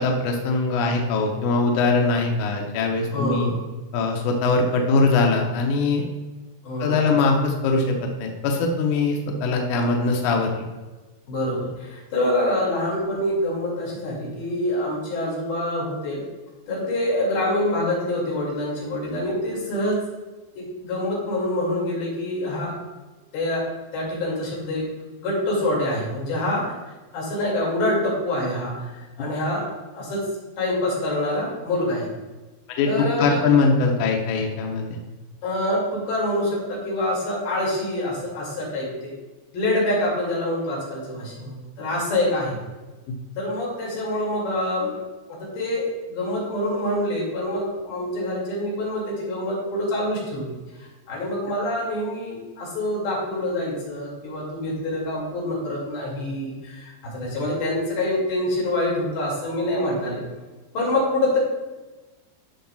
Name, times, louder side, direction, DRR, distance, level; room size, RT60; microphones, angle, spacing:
voice 1, 0.0-3.5 3.9-6.0 6.8-10.5 32.7-32.9 33.2-35.0, left 3 dB, 70° left, 2 dB, 2.1 m, -21 dB
voice 2, 3.1-3.6 6.7-7.0 11.3-16.2 16.7-20.0 20.6-22.7 23.3-23.7 23.9-24.8 25.2-26.7 27.1-30.3 30.6-32.1 32.9-33.5 35.4-39.1 39.5-42.6 43.4-45.0 45.3-50.5 50.8-60.2 60.7-61.4, left 1 dB, 90° left, -4 dB, 4.2 m, -26 dB
13.0 x 5.4 x 2.3 m, 1.2 s
omnidirectional pair, 4.1 m